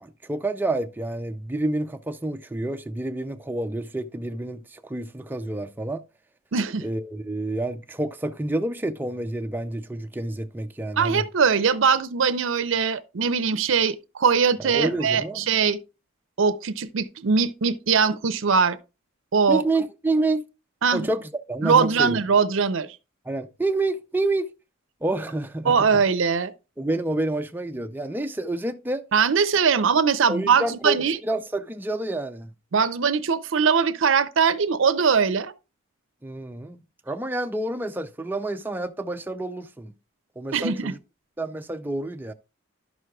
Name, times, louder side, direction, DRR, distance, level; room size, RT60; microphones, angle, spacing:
voice 1, 0.0-6.0 6.8-11.2 14.6-15.5 19.5-20.4 20.9-22.2 23.3-24.5 25.0-25.9 26.8-29.0 30.3-31.0 31.2-32.5 36.2-39.9 40.4-41.0 41.4-42.3, right 2 dB, 10° right, 0.4 m, -28 dB
voice 2, 6.5-6.8 11.0-15.8 16.4-18.8 19.3-19.6 20.8-21.1 21.6-23.0 25.7-26.5 29.1-31.2 32.7-35.5 40.5-40.9, right 6 dB, 70° right, 0.5 m, -21 dB
11.5 x 6.2 x 2.3 m
head